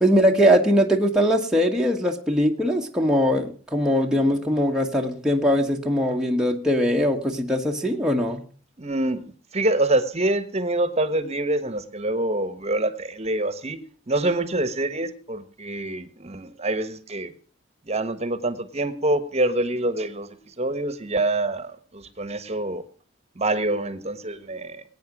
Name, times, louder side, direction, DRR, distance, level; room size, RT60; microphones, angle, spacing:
voice 1, 0.0-8.4, equal, 5° right, 0 dB, 1.3 m, -21 dB
voice 2, 8.8-9.2 9.5-13.8 14.1-17.3 17.9-20.3 20.6-22.8 23.4-24.8, right 2 dB, 35° right, 12 dB, 1.3 m, -26 dB
21.0 x 9.3 x 6.0 m, 0.42 s
head